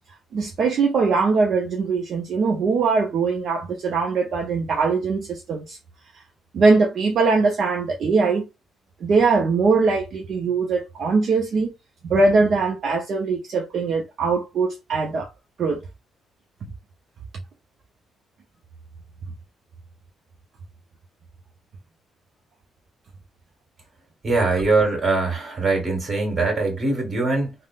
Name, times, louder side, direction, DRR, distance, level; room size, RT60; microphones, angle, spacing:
voice 1, 0.3-5.8 6.5-8.4 9.0-11.7 12.0-15.3 15.6-15.8, right 4 dB, 60° right, 0.6 m, -21 dB
voice 2, 24.2-27.5, right 3 dB, 35° right, 1.8 m, -22 dB
3.5 x 2.1 x 2.4 m
cardioid pair, 90°, 0 cm